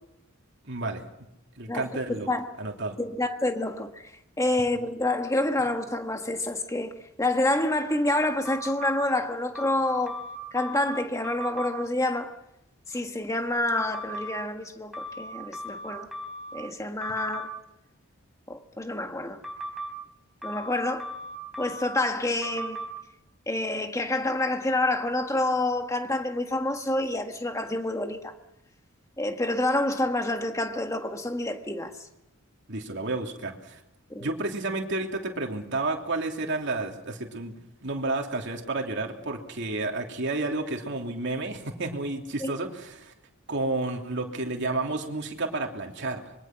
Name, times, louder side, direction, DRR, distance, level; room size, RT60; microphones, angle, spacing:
voice 1, 0.7-1.0 1.6-2.3 2.6-2.9 32.7-33.8 34.2-37.6 37.8-43.1 43.5-46.3, right 2 dB, 55° right, 3.1 m, -31 dB
voice 2, 1.7-2.5 3.0-4.1 4.4-6.9 7.2-10.2 10.5-12.3 12.9-16.1 16.5-17.5 18.5-19.4 20.4-21.1 21.6-22.8 23.5-28.3 29.2-31.9 34.1-34.3 42.4-42.5, left 2 dB, 15° left, 1.6 m, -28 dB
sound 1, 8.4-8.9 9.5-10.9 11.2-11.7 13.8-14.3 14.9-16.6 17.0-17.5 19.4-19.9 20.4-21.9 22.4-22.9, equal, ahead, 3.8 m, -37 dB
25.5 x 23.0 x 6.0 m
head